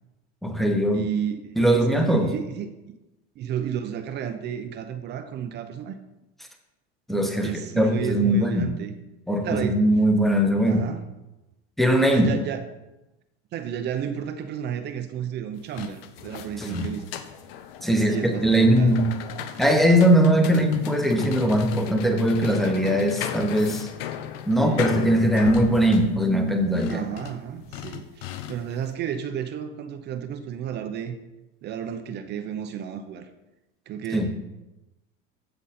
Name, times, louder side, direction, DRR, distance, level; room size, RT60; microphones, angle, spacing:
voice 1, 0.4-1.0 1.6-2.3 7.1-8.7 9.3-10.9 11.8-12.3 16.6-16.9 17.8-19.1 19.6-23.9 24.5-27.0 34.1-34.3, equal, ahead, 4 dB, 1.0 m, -20 dB
voice 2, 0.9-3.0 3.4-5.9 7.4-8.9 9.4-9.8 10.6-11.0 12.1-12.7 13.5-17.1 17.9-19.0 24.6-24.9 26.9-31.2 31.6-33.3 33.9-34.4, right 8 dB, 35° right, 8 dB, 0.7 m, -32 dB
sound 1, 15.6-28.8, left 10 dB, 85° left, 0.9 m, -36 dB
15.0 x 5.3 x 4.3 m, 1.0 s
cardioid pair, 150°, 29 cm